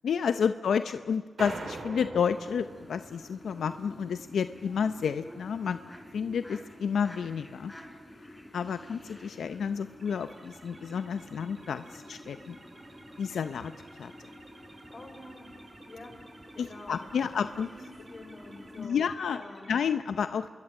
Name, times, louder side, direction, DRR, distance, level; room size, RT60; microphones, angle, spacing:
voice 1, 0.0-5.8 6.1-7.7 8.5-12.5 13.2-13.7 14.0-14.1 16.6-17.7 18.8-19.4 19.7-20.5, left 7 dB, 90° left, 10 dB, 0.7 m, -30 dB
sound 1, 1.4-3.8, right 3 dB, 60° right, 3.5 m, -42 dB
sound 2, 2.3-18.9, left 1 dB, 10° left, 4.9 m, -50 dB
sound 3, 10.0-19.8, right 2 dB, 40° right, 5.2 m, -54 dB
voice 2, 14.9-15.5 15.9-16.2 16.5-19.7, left 2 dB, 45° left, 7 dB, 4.5 m, -48 dB
26.0 x 22.5 x 8.8 m, 1.5 s
cardioid pair, 70°, 0 cm